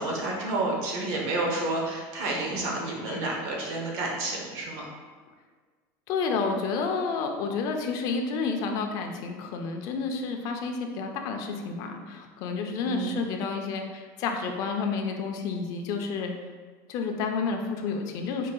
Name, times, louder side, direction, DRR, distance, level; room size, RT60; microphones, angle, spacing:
voice 1, 0.0-4.9 12.8-13.2, right 2 dB, 55° right, -1 dB, 0.9 m, -30 dB
voice 2, 6.1-16.3 16.9-18.5, left 4 dB, 40° left, 4 dB, 0.4 m, -30 dB
5.2 x 3.6 x 2.3 m, 1.5 s
cardioid pair, 175°, 9 cm